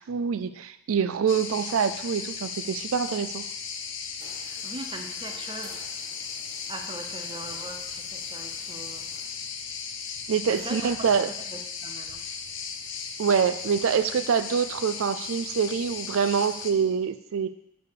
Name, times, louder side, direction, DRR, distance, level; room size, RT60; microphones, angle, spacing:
voice 1, 0.0-3.4 10.3-11.3 13.2-17.5, right 6 dB, 80° right, 11 dB, 0.4 m, -25 dB
sound 1, 1.3-16.7, left 6 dB, 65° left, 0.8 m, -36 dB
sound 2, 4.2-9.3, right 2 dB, 50° right, 1.8 m, -52 dB
voice 2, 4.3-5.9 6.7-9.2 10.5-12.2, right 2 dB, 25° right, 5 dB, 0.7 m, -41 dB
6.9 x 5.0 x 6.7 m, 0.78 s
head